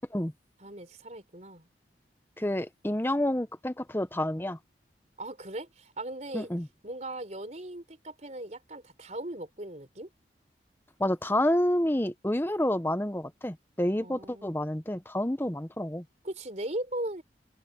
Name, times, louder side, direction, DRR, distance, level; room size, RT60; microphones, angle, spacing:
voice 1, 0.6-1.7 5.2-6.5 6.8-10.1 14.0-14.5 16.2-17.2, right 1 dB, 40° right, 4.3 m, -38 dB
voice 2, 2.4-4.6 6.3-6.7 11.0-16.0, left 1 dB, 10° left, 0.9 m, -29 dB
head